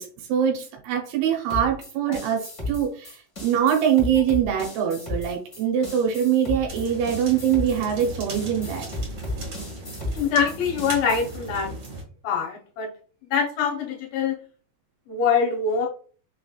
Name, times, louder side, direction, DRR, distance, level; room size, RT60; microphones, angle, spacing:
voice 1, 0.0-8.8, right 9 dB, 85° right, 1 dB, 2.8 m, -23 dB
sound 1, 1.5-11.4, left 2 dB, 30° left, 1.4 m, -34 dB
sound 2, 6.7-12.0, right 2 dB, 45° right, 2.0 m, -37 dB
voice 2, 10.1-11.7 12.2-12.9 13.3-14.4 15.1-15.9, left 6 dB, 75° left, 0 dB, 2.6 m, -24 dB
6.0 x 3.2 x 2.3 m, 0.41 s
omnidirectional pair, 4.4 m